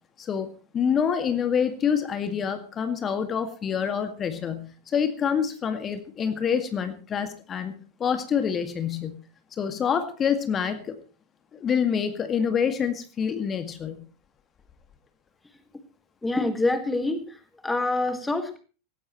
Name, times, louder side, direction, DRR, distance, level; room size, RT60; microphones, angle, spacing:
voice 1, 0.2-7.7 8.0-9.2 9.6-11.0 11.5-14.0, left 7 dB, 25° left, 9 dB, 2.0 m, -27 dB
voice 2, 16.2-18.6, left 2 dB, 10° left, 8 dB, 1.9 m, -26 dB
18.5 x 17.0 x 3.1 m, 0.36 s
figure-of-eight pair, 90°, 0 cm